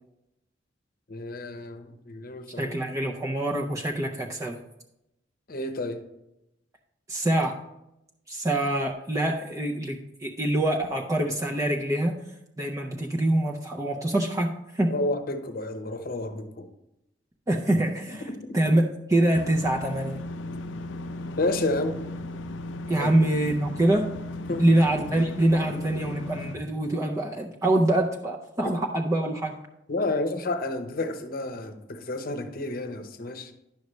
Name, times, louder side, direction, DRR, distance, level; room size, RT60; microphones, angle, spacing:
voice 1, 1.1-2.8 5.5-6.0 14.9-16.7 18.1-18.6 21.4-22.0 23.0-23.1 24.5-24.6 29.9-33.5, left 2 dB, 50° left, 8 dB, 0.8 m, -30 dB
voice 2, 2.6-4.6 7.1-7.6 8.3-12.2 12.6-14.9 17.5-18.2 18.5-20.2 22.9-24.1 24.6-29.5, right 1 dB, 20° right, 0 dB, 0.5 m, -25 dB
sound 1, 19.3-26.6, left 2 dB, 90° left, 0.5 m, -36 dB
10.5 x 6.4 x 3.1 m, 0.87 s
head